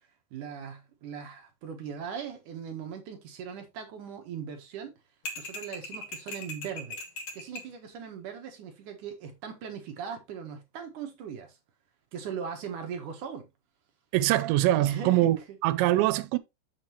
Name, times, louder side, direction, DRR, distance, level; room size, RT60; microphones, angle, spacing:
voice 1, 0.3-4.9 5.4-7.0 7.3-11.6 12.1-13.5 14.8-15.6, right 7 dB, 60° right, 2.2 m, -39 dB
sound 1, 5.3-7.7, left 2 dB, 50° left, 2.4 m, -39 dB
voice 2, 14.1-16.4, right 15 dB, 90° right, 2.9 m, -24 dB
7.5 x 7.2 x 3.0 m
omnidirectional pair, 5.0 m